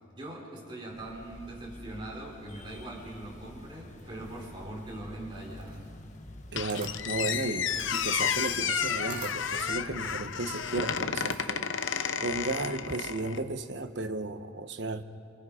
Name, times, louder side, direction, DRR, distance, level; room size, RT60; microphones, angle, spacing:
voice 1, 0.1-5.9, right 1 dB, 25° right, -3 dB, 5.0 m, -41 dB
sound 1, 0.9-10.9, left 1 dB, 40° left, 1.4 m, -49 dB
Camera, 6.3-11.8, right 5 dB, 40° right, 2.2 m, -48 dB
voice 2, 6.5-11.7 12.2-15.0, right 2 dB, 60° right, 9 dB, 1.0 m, -34 dB
Squeak, 6.6-13.4, left 7 dB, 80° left, 0.9 m, -31 dB
27.5 x 27.0 x 5.1 m, 2.4 s
head